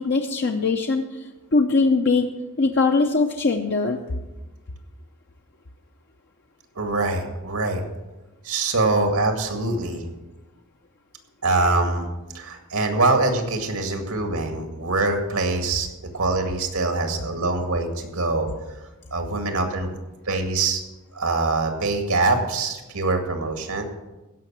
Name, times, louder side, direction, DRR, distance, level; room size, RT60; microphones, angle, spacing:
voice 1, 0.0-2.3 2.6-4.0, left 3 dB, 50° left, 3 dB, 0.7 m, -21 dB
voice 2, 6.8-7.8 8.4-10.1 11.4-12.1 12.3-15.9 16.1-19.9 20.2-20.8 21.1-23.8, right 3 dB, 85° right, 5 dB, 2.1 m, -24 dB
16.0 x 5.8 x 7.4 m, 1.1 s
head